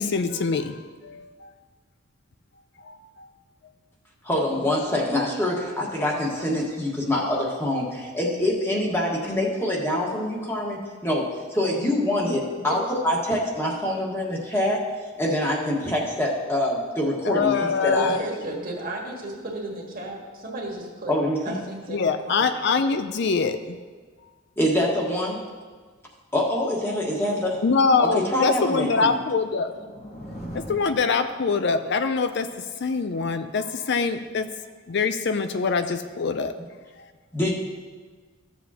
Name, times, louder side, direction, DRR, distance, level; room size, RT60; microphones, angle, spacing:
voice 1, 0.0-1.5 2.8-3.3 17.3-18.2 21.9-23.8 27.6-29.9 30.5-32.5 32.8-34.5 34.9-36.5, left 4 dB, 60° left, 9 dB, 0.5 m, -24 dB
voice 2, 4.2-18.2 21.1-21.6 24.5-25.4 26.3-27.6 28.0-29.2 37.3-37.5, left 1 dB, 10° left, -3 dB, 1.6 m, -25 dB
voice 3, 17.9-21.1 21.4-22.5, right 2 dB, 45° right, -1 dB, 1.7 m, -34 dB
sound 1, 29.3-31.9, equal, 35° left, 1.4 m, -41 dB
14.5 x 7.2 x 2.9 m, 1.4 s
head